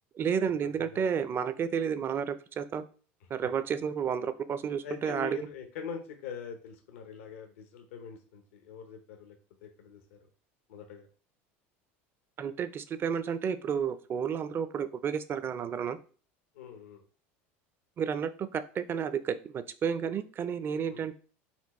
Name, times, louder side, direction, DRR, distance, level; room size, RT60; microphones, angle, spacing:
voice 1, 0.2-2.8 3.3-5.4 12.4-16.0 18.0-21.2, right 7 dB, 35° right, 13 dB, 0.4 m, -31 dB
voice 2, 0.7-1.0 4.8-9.4 9.6-10.2 10.7-11.1 16.5-17.0 20.9-21.0, left 6 dB, 90° left, 4 dB, 0.8 m, -43 dB
4.4 x 2.2 x 4.1 m, 0.39 s
supercardioid pair, 105°, 7 cm